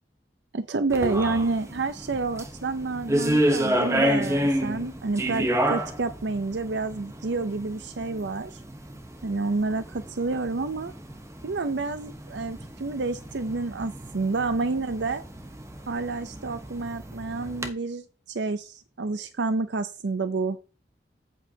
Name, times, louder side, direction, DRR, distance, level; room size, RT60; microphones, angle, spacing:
voice 1, 0.5-8.6 9.2-10.9 11.4-15.2 15.9-20.6, right 3 dB, 80° right, 11 dB, 0.6 m, -29 dB
sound 1, 0.9-17.7, equal, 15° right, 0.9 m, -30 dB
8.4 x 8.3 x 2.8 m, 0.34 s
head